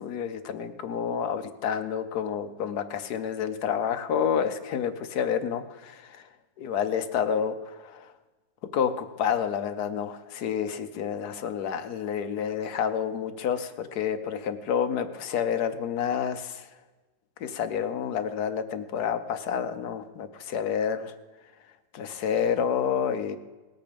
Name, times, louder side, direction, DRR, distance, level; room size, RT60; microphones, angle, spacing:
voice 1, 0.0-6.3 6.6-8.1 8.7-16.7 17.4-21.1 21.9-23.4, left 8 dB, 65° left, 9 dB, 1.3 m, -29 dB
18.5 x 8.5 x 5.2 m, 1.3 s
omnidirectional pair, 2.0 m